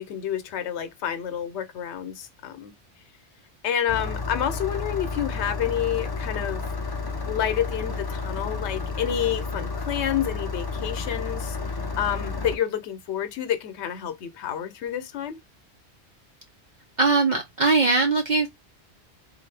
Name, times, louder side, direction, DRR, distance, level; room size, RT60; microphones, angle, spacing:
voice 1, 0.0-2.7 3.6-6.6 7.3-11.6 12.0-15.4, left 9 dB, 80° left, 1.0 m, -29 dB
Engine starting, 3.9-12.6, left 4 dB, 30° left, 0.4 m, -31 dB
voice 2, 17.0-18.5, right 3 dB, 50° right, 0.6 m, -20 dB
3.8 x 2.6 x 3.2 m
omnidirectional pair, 1.1 m